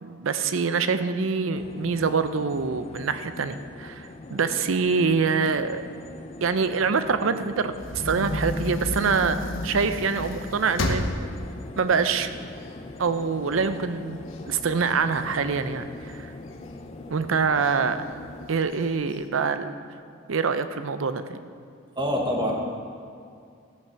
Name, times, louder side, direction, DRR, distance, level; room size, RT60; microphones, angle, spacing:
voice 1, 0.0-5.8 6.4-11.1 11.8-12.5 13.0-16.3 17.1-18.0 18.5-19.7 20.3-21.4, right 5 dB, 80° right, 11 dB, 0.6 m, -25 dB
sound 1, 1.5-18.5, left 2 dB, 30° left, 0.5 m, -42 dB
sound 2, 7.8-13.0 13.5-13.6 13.9-15.9 16.5-17.0 17.6-17.7 18.0-18.1 18.6-19.2, left 1 dB, 75° left, 1.0 m, -31 dB
voice 2, 21.9-22.5, equal, 25° right, 0 dB, 1.4 m, -25 dB
14.0 x 6.0 x 5.7 m, 2.3 s
head